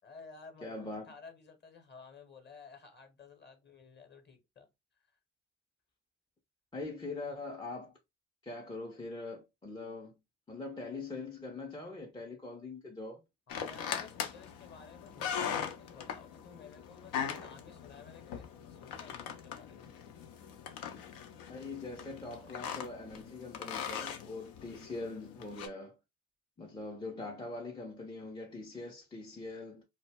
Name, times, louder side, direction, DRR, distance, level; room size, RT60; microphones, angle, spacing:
voice 1, 0.0-4.7 5.1-5.2 13.5-20.1, left 5 dB, 30° left, 0.9 m, -54 dB
voice 2, 0.6-1.1 6.7-7.9 8.4-10.2 10.5-13.2 21.5-26.0 26.6-29.8, left 3 dB, 15° left, 0.5 m, -42 dB
sound 1, 13.5-25.7, left 8 dB, 65° left, 0.6 m, -41 dB
2.1 x 2.1 x 3.3 m
hypercardioid pair, 55°, 37 cm